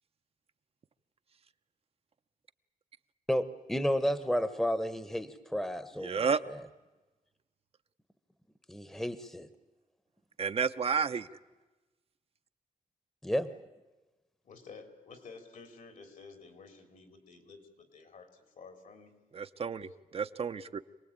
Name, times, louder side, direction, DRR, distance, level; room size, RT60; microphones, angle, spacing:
voice 1, 3.3-6.6 8.7-9.5 13.2-13.5, equal, 5° left, 1.0 m, -32 dB
voice 2, 6.0-6.4 10.4-11.3 19.3-20.8, right 6 dB, 45° right, 0.8 m, -31 dB
voice 3, 14.4-19.2, left 4 dB, 70° left, 3.6 m, -52 dB
27.0 x 19.0 x 8.8 m
wide cardioid pair, 125°, 14 cm